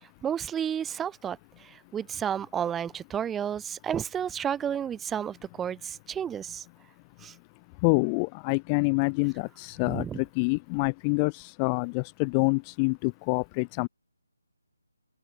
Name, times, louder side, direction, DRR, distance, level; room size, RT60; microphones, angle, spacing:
voice 1, 0.2-6.6 7.2-7.3 9.8-10.2, right 8 dB, 10° right, 1.5 m, -32 dB
voice 2, 7.8-13.9, left 34 dB, 20° left, 1.2 m, -27 dB
open air
figure-of-eight pair, 155°, 0 cm